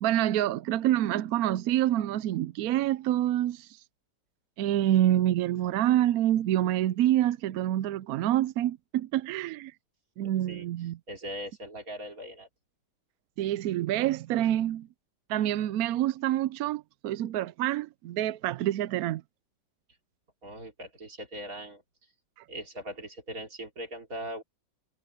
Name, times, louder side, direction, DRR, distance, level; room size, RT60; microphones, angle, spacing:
voice 1, 0.0-3.8 4.6-9.7 10.2-11.0 13.4-14.9 15.3-19.2, right 12 dB, 70° right, 0.9 m, -27 dB
voice 2, 10.2-12.5 20.4-21.8 22.5-24.4, equal, 50° right, 4.0 m, -40 dB
omnidirectional pair, 1.9 m